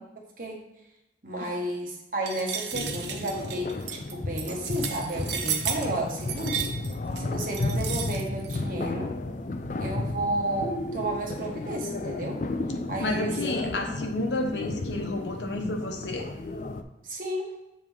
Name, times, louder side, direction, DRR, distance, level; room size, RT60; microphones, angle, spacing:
voice 1, 1.2-6.7 7.2-9.1 9.8-12.4 12.9-13.3 17.0-17.5, right 1 dB, 50° right, 0 dB, 1.3 m, -32 dB
sound 1, 2.3-8.6, right 8 dB, 80° right, 0.7 m, -34 dB
sound 2, 2.7-16.8, left 2 dB, 45° left, 0.4 m, -33 dB
voice 2, 13.0-16.3, left 2 dB, 85° left, 3 dB, 1.0 m, -31 dB
7.0 x 3.7 x 4.6 m, 0.95 s
head